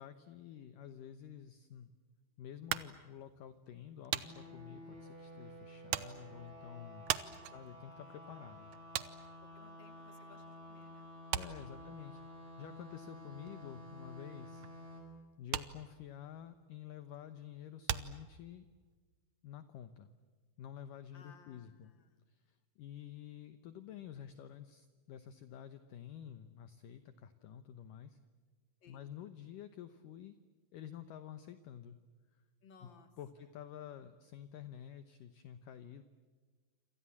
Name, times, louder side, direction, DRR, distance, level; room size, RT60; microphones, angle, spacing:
voice 1, 0.0-1.9 2.4-7.1 7.5-8.7 11.3-14.7 15.4-18.7 19.4-20.1 20.6-21.9 22.3-28.2 28.9-30.4 30.7-32.0 32.8-32.9 33.2-36.0, left 10 dB, 70° left, 10 dB, 2.1 m, -50 dB
sound 1, 2.7-10.5 10.8-18.9, right 12 dB, 80° right, 1.7 m, -42 dB
sound 2, 4.2-15.0, left 1 dB, 35° right, 8.5 m, -52 dB
voice 2, 7.2-7.6 9.4-12.2 21.1-22.2 28.8-29.3 32.6-33.1 33.4-33.5, left 5 dB, 35° left, 7 dB, 2.5 m, -63 dB
28.5 x 27.0 x 7.3 m, 1.4 s
omnidirectional pair, 5.0 m